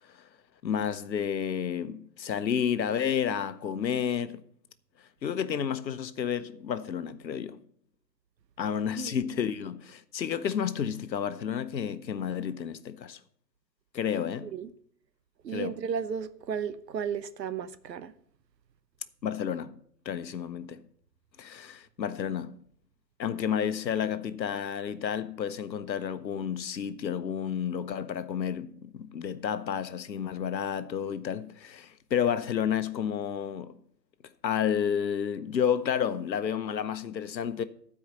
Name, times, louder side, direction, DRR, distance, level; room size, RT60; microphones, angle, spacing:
voice 1, 0.6-4.4 5.2-7.6 8.6-13.2 13.9-14.5 15.5-15.7 19.2-19.7 20.0-20.8 21.4-22.6 23.2-33.8 34.4-37.6, left 8 dB, 90° left, 0.9 m, -31 dB
voice 2, 8.9-9.3 14.4-14.7 15.4-18.1, right 7 dB, 75° right, 0.9 m, -34 dB
12.5 x 4.8 x 6.8 m
hypercardioid pair, 145°, 50 cm